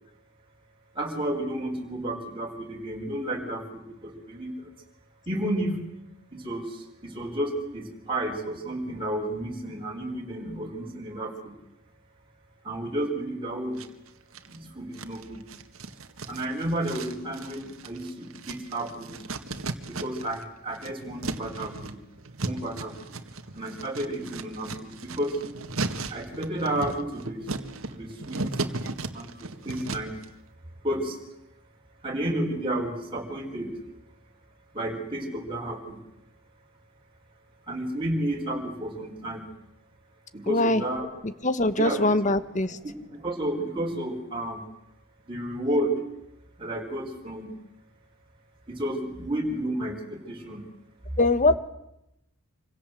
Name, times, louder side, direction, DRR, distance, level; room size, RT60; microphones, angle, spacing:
voice 1, 1.0-3.6 4.3-4.5 5.3-5.7 6.3-6.6 7.1-11.5 12.7-13.8 14.8-15.4 16.3-19.1 20.0-22.0 22.4-22.9 23.5-25.4 26.1-27.4 27.9-28.4 29.1-29.3 29.6-30.1 30.8-31.1 32.0-33.7 34.7-36.0 37.7-39.4 40.3-41.1 41.8-42.0 42.8-42.9 43.2-44.6 45.3-45.9 46.6-47.5 48.7-50.6, right 1 dB, 25° right, -1 dB, 4.4 m, -31 dB
sound 1, 13.8-14.6 14.9-20.4 20.7-30.3, right 3 dB, 90° right, 1.9 m, -36 dB
voice 2, 40.5-40.8 41.4-42.8 51.2-51.5, left 2 dB, 35° left, 13 dB, 1.3 m, -22 dB
26.5 x 25.5 x 7.7 m, 0.86 s
head